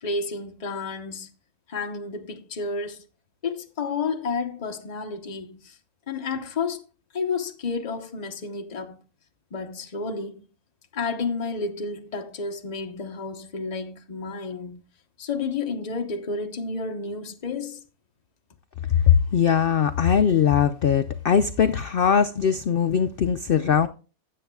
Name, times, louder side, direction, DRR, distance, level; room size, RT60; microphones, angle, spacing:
voice 1, 0.0-1.3 1.7-3.1 3.4-5.8 6.1-6.8 7.1-9.0 9.5-10.4 10.9-14.8 15.2-17.8, left 4 dB, 30° left, 1.0 m, -31 dB
voice 2, 18.9-23.9, left 8 dB, 70° left, 0.5 m, -20 dB
16.5 x 7.7 x 2.3 m
omnidirectional pair, 1.5 m